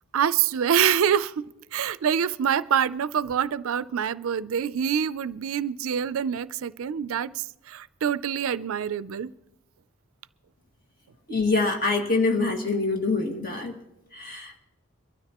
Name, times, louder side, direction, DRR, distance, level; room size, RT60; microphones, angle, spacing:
voice 1, 0.1-1.5 1.7-9.3, right 8 dB, 75° right, 0.4 m, -25 dB
voice 2, 11.3-13.8 14.1-14.6, left 3 dB, 40° left, 1.9 m, -25 dB
23.0 x 13.0 x 2.9 m
head